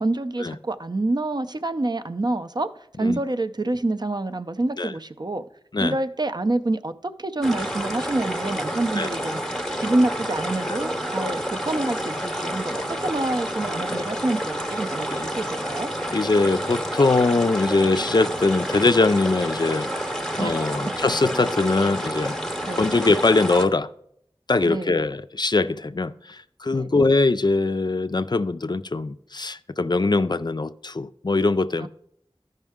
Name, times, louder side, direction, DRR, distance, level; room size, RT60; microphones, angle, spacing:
voice 1, 0.0-2.7 3.0-5.4 5.8-9.4 9.8-15.9 20.4-20.7 22.7-22.9 24.7-24.9 26.7-27.1 31.8-31.9, right 2 dB, 45° right, 0.5 m, -27 dB
sound 1, 7.4-23.7, equal, 5° left, 0.8 m, -29 dB
voice 2, 16.1-19.9 20.4-22.4 22.8-23.9 24.5-31.9, left 3 dB, 45° left, 0.3 m, -22 dB
13.5 x 5.5 x 3.5 m
wide cardioid pair, 40°, 10 cm